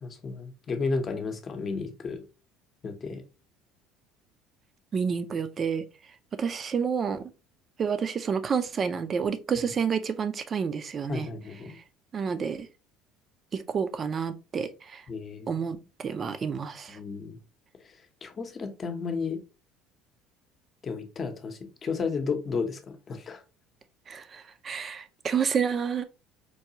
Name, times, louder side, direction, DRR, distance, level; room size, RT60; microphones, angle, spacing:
voice 1, 0.0-2.2 2.8-3.2 11.1-11.8 15.1-15.5 16.9-17.4 18.2-19.4 20.8-23.4, left 4 dB, 35° left, 0.8 m, -33 dB
voice 2, 4.9-5.8 6.4-7.3 7.8-11.3 12.1-12.7 13.5-15.0 15.5-17.0 24.1-26.0, right 6 dB, 40° right, 0.5 m, -29 dB
4.6 x 2.3 x 2.8 m
supercardioid pair, 90°, 0 cm